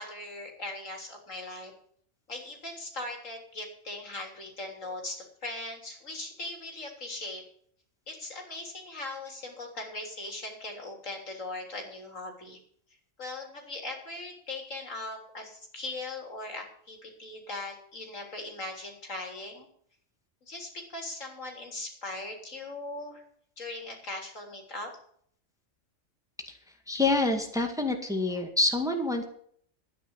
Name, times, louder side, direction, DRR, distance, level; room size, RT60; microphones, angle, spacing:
voice 1, 0.0-1.7 2.3-7.4 8.1-12.6 13.2-19.7 20.4-23.2 23.6-24.9, left 2 dB, 75° left, 2 dB, 3.8 m, -39 dB
voice 2, 26.9-29.2, left 2 dB, 5° right, 3 dB, 1.9 m, -27 dB
12.0 x 9.8 x 7.1 m, 0.62 s
omnidirectional pair, 1.3 m